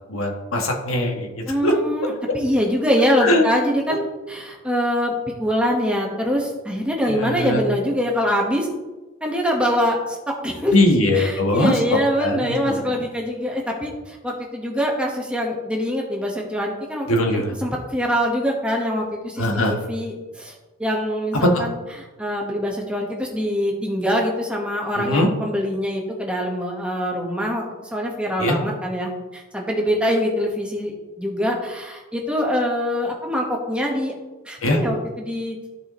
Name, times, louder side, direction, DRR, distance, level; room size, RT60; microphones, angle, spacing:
voice 1, 0.1-1.7 3.2-3.4 3.9-4.0 7.1-7.6 10.7-12.7 17.1-17.5 19.4-19.8 21.4-21.6 25.0-25.3 28.4-28.6 34.6-34.8, left 1 dB, 75° left, 2 dB, 1.4 m, -21 dB
voice 2, 1.5-5.1 5.4-8.7 9.2-10.7 11.1-17.1 17.3-34.1 34.4-35.6, equal, 5° right, -1 dB, 1.2 m, -24 dB
14.0 x 5.0 x 3.0 m, 1.2 s
head